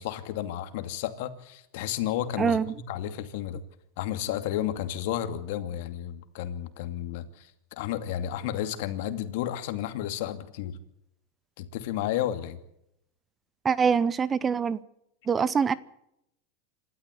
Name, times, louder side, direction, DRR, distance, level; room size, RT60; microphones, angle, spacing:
voice 1, 0.0-3.6 4.0-7.5 7.8-10.8 11.6-12.6, left 11 dB, 65° left, 2.5 m, -32 dB
voice 2, 13.6-14.8 15.3-15.7, right 6 dB, 20° right, 0.9 m, -24 dB
27.0 x 13.0 x 8.2 m
supercardioid pair, 135°, 0 cm